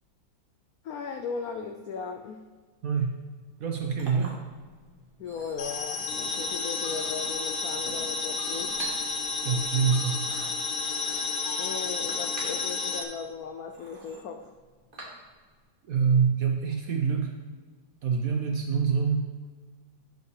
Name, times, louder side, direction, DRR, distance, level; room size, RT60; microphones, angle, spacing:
voice 1, 0.8-2.4 5.2-8.8 11.6-14.5, left 6 dB, 85° left, 5 dB, 0.8 m, -37 dB
Chink clink, 3.5-15.6, right 2 dB, 30° right, 1.4 m, -46 dB
voice 2, 3.6-4.4 9.4-10.2 15.9-17.3 18.0-19.3, right 6 dB, 70° right, 2 dB, 0.8 m, -25 dB
sound 1, 5.6-13.0, left 4 dB, 65° left, 1.3 m, -31 dB
10.5 x 5.5 x 3.2 m, 1.4 s
omnidirectional pair, 2.1 m